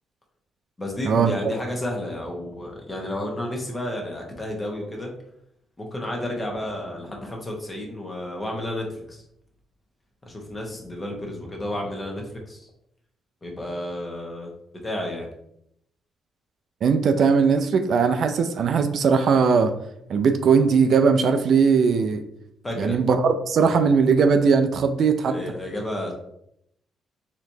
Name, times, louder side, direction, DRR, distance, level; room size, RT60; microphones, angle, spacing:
voice 1, 0.8-5.1 5.8-9.2 10.2-12.7 13.4-14.5 14.8-15.3 22.6-23.0 25.3-26.1, left 1 dB, 20° left, 0 dB, 1.1 m, -31 dB
voice 2, 16.8-19.7 20.1-22.2 22.8-25.3, right 5 dB, 60° right, 7 dB, 0.4 m, -19 dB
4.1 x 3.0 x 2.7 m, 0.74 s
cardioid pair, 90°, 0 cm